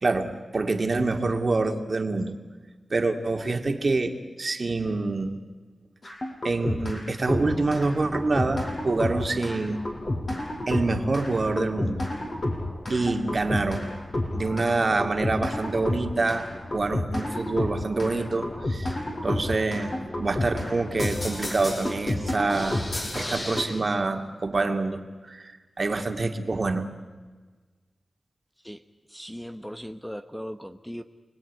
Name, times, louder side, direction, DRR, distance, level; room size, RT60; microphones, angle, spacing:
voice 1, 0.0-2.4 2.9-5.4 6.4-9.8 10.7-12.0 12.9-13.9 14.3-18.9 19.2-22.8 23.1-26.9, right 3 dB, 45° right, 5 dB, 2.4 m, -26 dB
sound 1, 6.0-7.0 7.3-23.6, left 1 dB, 45° left, 6.2 m, -31 dB
voice 2, 29.1-31.0, equal, 5° left, 8 dB, 1.0 m, -38 dB
29.0 x 20.5 x 9.5 m, 1.4 s
wide cardioid pair, 90°, 0 cm